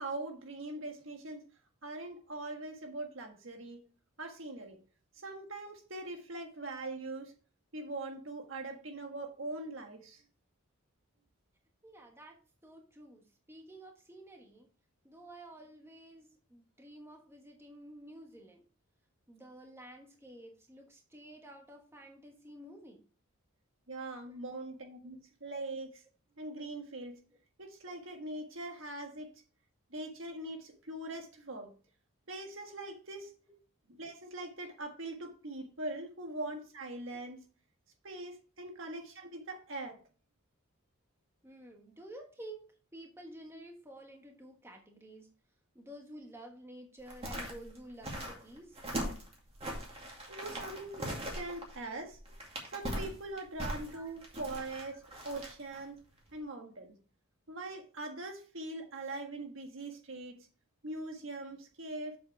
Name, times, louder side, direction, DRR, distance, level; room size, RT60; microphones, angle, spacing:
voice 1, 0.0-1.5 1.8-3.8 4.2-4.8 5.2-7.3 7.7-10.2 23.9-26.0 26.4-27.2 27.6-29.4 29.9-31.7 32.3-33.3 33.9-37.4 38.0-40.0 50.3-52.2 52.7-56.0 56.3-57.0 57.5-60.4 60.8-62.2, right 2 dB, 60° right, 1.5 m, -42 dB
voice 2, 11.8-14.7 15.0-18.6 19.3-23.1 24.3-24.4 25.0-25.1 33.5-33.6 41.4-45.3 45.7-48.8 53.9-54.1, right 1 dB, 10° right, 1.3 m, -51 dB
sound 1, 47.0-55.8 56.2-56.3, right 1 dB, 25° right, 2.3 m, -40 dB
7.6 x 7.2 x 3.3 m
head